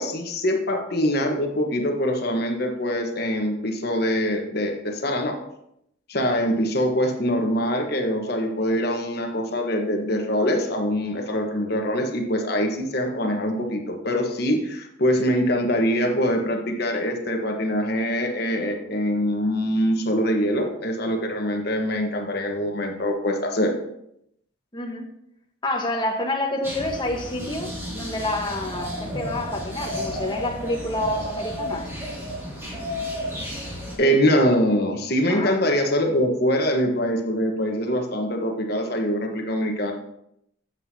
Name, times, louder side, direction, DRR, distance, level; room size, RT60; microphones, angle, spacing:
voice 1, 0.0-5.4 6.1-23.7 34.0-39.9, equal, 55° left, 3 dB, 1.2 m, -24 dB
voice 2, 24.7-25.1 25.6-31.9 35.3-35.6, left 1 dB, 25° left, 1 dB, 1.2 m, -28 dB
sound 1, 26.6-34.0, equal, 15° right, 2.4 m, -32 dB
10.5 x 7.7 x 2.8 m, 0.76 s
head